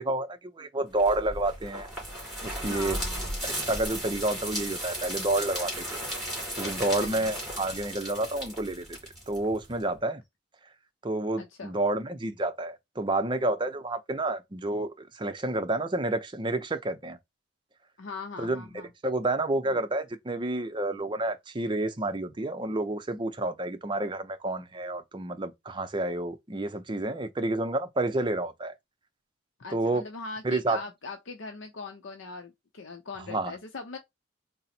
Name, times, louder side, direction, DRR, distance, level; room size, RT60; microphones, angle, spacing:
voice 1, 0.0-1.9 2.4-3.0 3.4-6.0 6.5-9.0 9.3-10.2 11.0-14.9 15.1-17.2 18.4-18.6 19.0-28.7 29.7-30.0 30.4-30.8 33.3-33.6, right 2 dB, 25° right, 0.5 m, -29 dB
sound 1, 1.0-9.8, equal, ahead, 2.6 m, -35 dB
voice 2, 2.7-3.4 7.0-7.3 11.4-11.7 18.0-18.9 29.6-34.0, left 4 dB, 75° left, 0.6 m, -40 dB
3.9 x 2.0 x 4.2 m
head